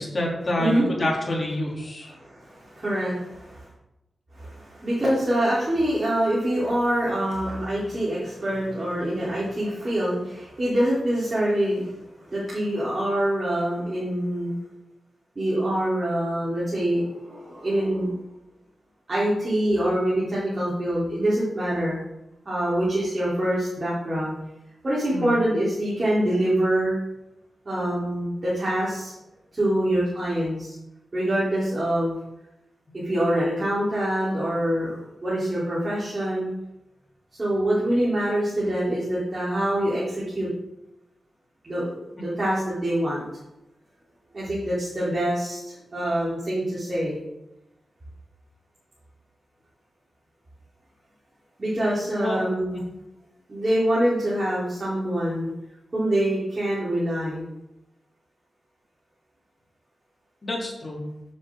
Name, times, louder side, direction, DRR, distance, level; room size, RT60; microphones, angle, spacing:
voice 1, 0.0-2.1 25.1-25.4 52.2-52.4 52.7-52.8 60.4-61.0, left 1 dB, 35° left, -3 dB, 3.1 m, -27 dB
voice 2, 2.1-3.7 4.3-11.9 12.3-14.5 15.4-18.1 19.1-22.0 22.5-24.3 24.8-27.0 27.7-29.1 29.5-30.8 31.1-32.1 33.0-36.5 37.4-40.5 41.6-41.9 42.2-43.2 44.3-47.2 51.6-52.8 53.5-55.5 55.9-57.5, right 1 dB, 30° right, -9 dB, 3.5 m, -25 dB
15.5 x 7.4 x 3.7 m, 0.91 s
wide cardioid pair, 155°, 0 cm